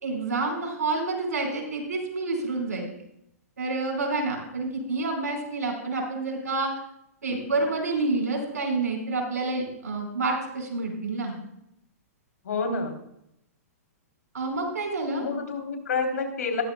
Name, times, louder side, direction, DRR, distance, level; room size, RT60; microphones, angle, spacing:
voice 1, 0.0-2.8 3.6-6.7 7.2-11.4 14.3-15.3, right 3 dB, 85° right, 2 dB, 5.0 m, -28 dB
voice 2, 12.4-13.0 15.2-16.6, left 4 dB, 75° left, 3 dB, 3.4 m, -29 dB
16.5 x 14.5 x 2.3 m, 0.80 s
hypercardioid pair, 120°, 9 cm